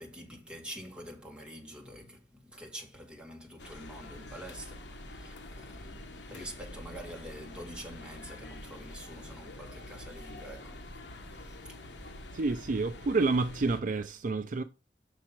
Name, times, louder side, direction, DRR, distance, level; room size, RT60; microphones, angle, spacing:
voice 1, 0.0-10.9 11.3-12.2, equal, 5° right, 2.0 m, -47 dB
sound 1, 3.6-13.8, left 1 dB, 70° left, 1.1 m, -46 dB
voice 2, 12.3-14.6, right 3 dB, 50° right, 0.5 m, -29 dB
6.0 x 5.7 x 4.5 m
head